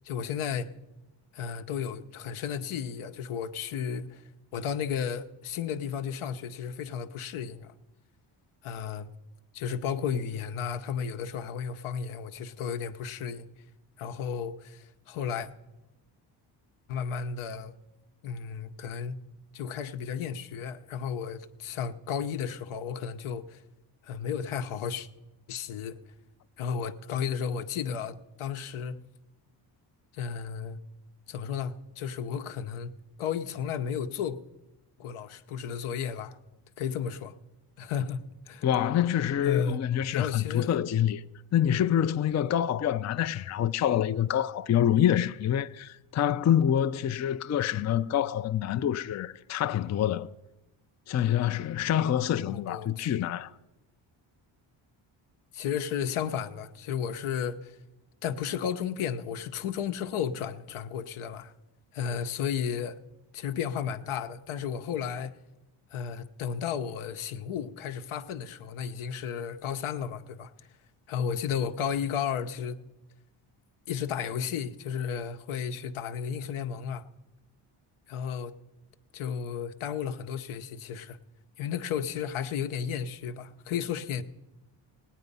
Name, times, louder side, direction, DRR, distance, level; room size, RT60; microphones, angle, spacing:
voice 1, 0.0-0.7 1.3-4.2 4.5-7.7 8.6-9.1 9.5-13.5 14.0-15.5 16.9-17.7 18.2-19.2 19.5-23.6 24.0-25.1 25.5-26.0 26.6-29.0 30.1-30.8 31.3-32.9 33.2-34.4 35.0-36.4 36.8-37.4 37.8-38.7 39.4-39.8 40.1-40.7 52.5-53.1 55.5-57.8 58.2-61.5 61.9-63.0 63.3-65.4 65.9-70.5 71.1-72.8 73.9-77.0 78.1-78.5 79.1-81.2 81.6-84.2, left 7 dB, 80° left, 0.9 m, -33 dB
voice 2, 38.6-41.2 41.5-50.3 51.1-53.5, left 10 dB, 35° left, 0.5 m, -26 dB
17.5 x 9.4 x 5.4 m
cardioid pair, 75°, 49 cm